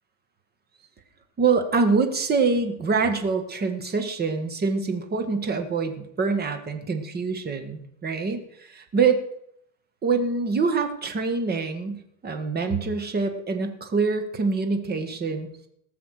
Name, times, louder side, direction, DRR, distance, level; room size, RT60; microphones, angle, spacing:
voice 1, 1.4-9.2 10.0-15.5, right 4 dB, 20° right, 7 dB, 1.8 m, -25 dB
18.5 x 7.0 x 6.7 m, 0.73 s
supercardioid pair, 135°, 45 cm